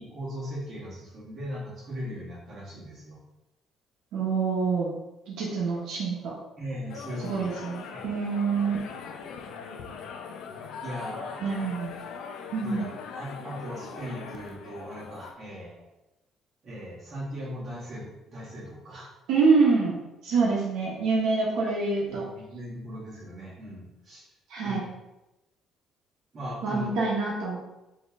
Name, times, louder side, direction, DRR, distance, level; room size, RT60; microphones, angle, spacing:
voice 1, 0.0-3.2 6.6-7.5 7.9-8.2 10.8-11.6 12.6-15.8 16.6-19.1 22.0-24.2 24.6-24.8 26.3-26.9, equal, 30° right, -6 dB, 1.5 m, -38 dB
voice 2, 4.1-4.9 5.3-6.3 7.2-8.8 11.4-11.9 12.5-12.8 19.3-20.0 20.2-22.2 24.5-24.8 26.6-27.6, right 4 dB, 80° right, -3 dB, 0.9 m, -26 dB
sound 1, 6.9-15.3, left 6 dB, 75° left, 0.4 m, -41 dB
4.2 x 2.9 x 3.5 m, 0.97 s
cardioid pair, 160°, 0 cm